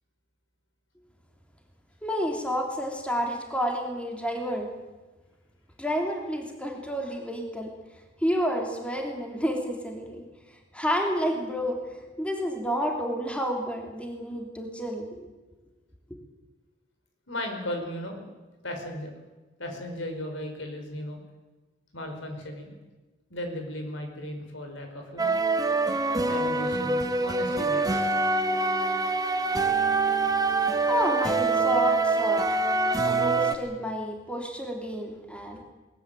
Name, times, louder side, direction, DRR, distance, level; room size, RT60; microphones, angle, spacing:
voice 1, 2.0-4.7 5.8-7.7 8.2-10.3 10.7-11.8 12.2-15.3 30.9-32.5 33.0-35.6, equal, 5° left, 2 dB, 3.2 m, -30 dB
voice 2, 17.3-18.2 18.6-19.1 19.6-21.2 21.9-22.7 23.3-25.4 26.2-28.0, left 1 dB, 70° left, 4 dB, 5.0 m, -36 dB
sound 1, 25.2-33.6, right 3 dB, 20° right, 1.4 m, -25 dB
21.0 x 20.0 x 9.1 m, 1.2 s
head